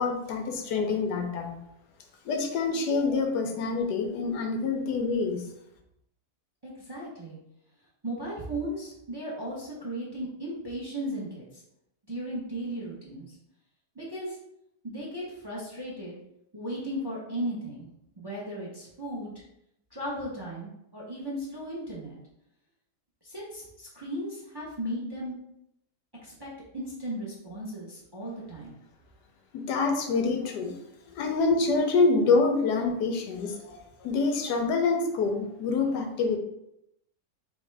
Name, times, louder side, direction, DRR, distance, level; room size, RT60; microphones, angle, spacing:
voice 1, 0.0-1.6 2.2-5.4 29.5-30.8 31.1-36.4, left 4 dB, 85° left, 3 dB, 1.3 m, -26 dB
voice 2, 6.6-7.4 8.0-11.6 12.1-13.3 13.9-14.4 14.8-16.2 16.5-17.9 18.2-19.3 19.9-22.2 23.2-25.4 26.2-28.7, right 1 dB, 20° right, -5 dB, 0.7 m, -36 dB
3.6 x 3.4 x 3.3 m, 0.80 s
omnidirectional pair, 1.7 m